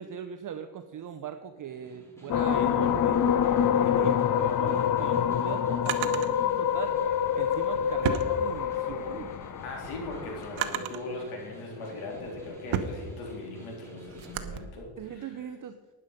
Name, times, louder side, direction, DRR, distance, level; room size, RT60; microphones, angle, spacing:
voice 1, 0.0-3.2 3.8-7.0 7.3-9.3 15.0-15.8, right 8 dB, 40° right, 7 dB, 0.7 m, -40 dB
Snare drum, 1.7-14.4, left 1 dB, 5° left, 2.9 m, -51 dB
sound 1, 2.3-10.7, left 9 dB, 40° left, 0.6 m, -26 dB
Drawer open or close, 4.7-6.3 7.3-9.0 9.4-11.1 11.8-14.6, right 9 dB, 75° right, 1.1 m, -35 dB
voice 2, 9.6-15.4, left 2 dB, 85° left, 0 dB, 3.7 m, -39 dB
12.5 x 9.8 x 5.2 m, 1.3 s
cardioid pair, 130°, 49 cm